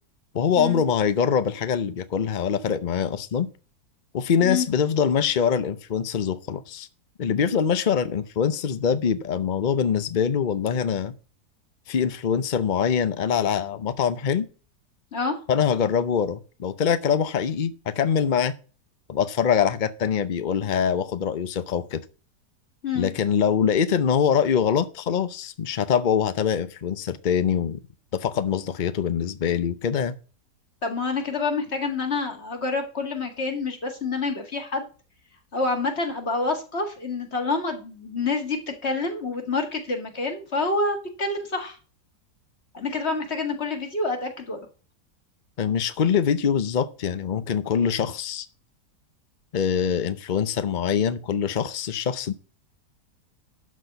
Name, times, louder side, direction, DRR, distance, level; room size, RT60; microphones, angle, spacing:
voice 1, 0.3-3.5 4.1-6.9 7.2-11.1 11.9-14.5 15.5-18.5 19.1-22.0 23.0-27.8 28.1-30.1 45.6-48.5 49.5-52.3, left 7 dB, 65° left, 0.4 m, -24 dB
voice 2, 30.8-34.9 35.5-41.8 42.7-44.6, left 3 dB, 40° left, 2.2 m, -27 dB
12.5 x 4.3 x 7.9 m
omnidirectional pair, 1.8 m